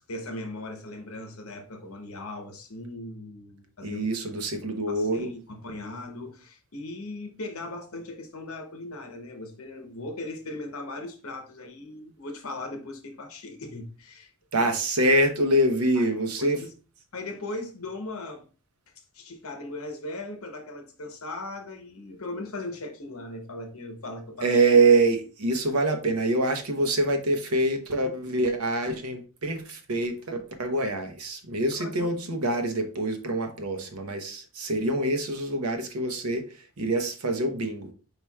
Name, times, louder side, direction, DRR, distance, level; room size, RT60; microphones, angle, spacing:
voice 1, 0.1-4.0 4.9-14.3 14.6-14.7 16.0-16.1 16.4-16.7 17.1-18.4 19.1-24.5 31.8-32.1, left 2 dB, 65° left, 0.9 m, -38 dB
voice 2, 3.8-5.3 14.5-16.6 24.4-36.4 36.8-37.9, right 2 dB, 75° right, 0.9 m, -25 dB
4.9 x 4.4 x 2.3 m
head